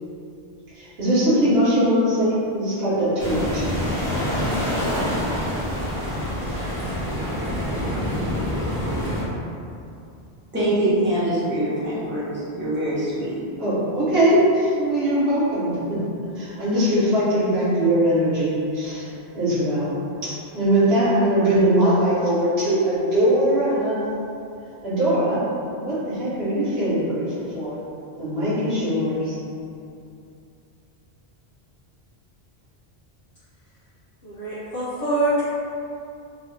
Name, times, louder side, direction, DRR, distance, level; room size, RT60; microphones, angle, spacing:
voice 1, 0.7-3.6 13.6-16.0 16.4-19.9 20.5-24.2 24.8-25.4 25.7-27.8 28.2-29.4, right 1 dB, 70° right, -10 dB, 1.2 m, -21 dB
sound 1, 3.2-9.2, equal, 35° left, 1.2 m, -26 dB
voice 2, 10.5-13.4, right 1 dB, 10° right, -11 dB, 0.9 m, -24 dB
voice 3, 34.2-35.4, right 1 dB, 60° left, -13 dB, 1.0 m, -24 dB
3.1 x 2.6 x 3.1 m, 2.6 s
omnidirectional pair, 1.1 m